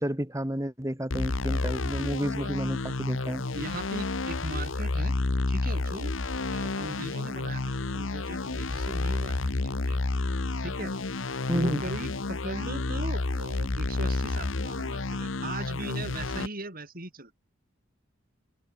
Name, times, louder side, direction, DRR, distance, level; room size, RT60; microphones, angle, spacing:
voice 1, 0.0-3.4 11.5-11.8, equal, 15° right, 3.2 m, -30 dB
sound 1, 1.1-16.5, left 2 dB, 80° left, 1.1 m, -30 dB
voice 2, 3.5-5.1 5.5-6.1 6.5-10.0 10.6-11.0 11.5-17.3, right 2 dB, 50° right, 7.7 m, -39 dB
head